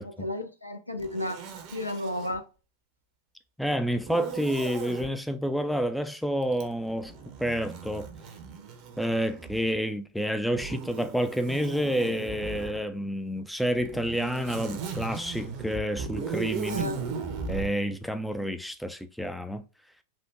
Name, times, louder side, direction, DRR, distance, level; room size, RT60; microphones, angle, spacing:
voice 1, 0.0-2.4 16.6-17.0, left 1 dB, 90° left, 0.5 m, -33 dB
Zipper (clothing), 1.0-2.4 4.0-5.1 6.5-9.8 10.5-12.8 13.7-17.7, right 5 dB, 40° right, 0.6 m, -37 dB
voice 2, 3.6-7.1 7.4-8.1 9.0-16.9 17.5-19.6, equal, ahead, 0.3 m, -29 dB
3.3 x 2.1 x 3.1 m
figure-of-eight pair, 90°, 0 cm